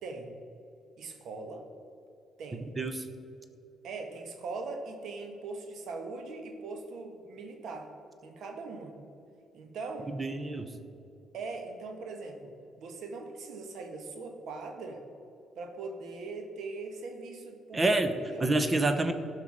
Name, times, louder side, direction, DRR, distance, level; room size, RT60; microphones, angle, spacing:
voice 1, 0.0-0.3 1.0-1.7 2.4-2.7 3.8-7.9 8.2-8.9 9.5-10.1 11.3-15.0 15.5-17.9 18.3-18.5, right 3 dB, 75° right, 4 dB, 1.4 m, -41 dB
voice 2, 10.1-10.7 17.7-18.1 18.4-19.1, right 2 dB, 25° right, 8 dB, 0.9 m, -27 dB
13.0 x 5.7 x 4.9 m, 2.7 s
cardioid pair, 90°, 0 cm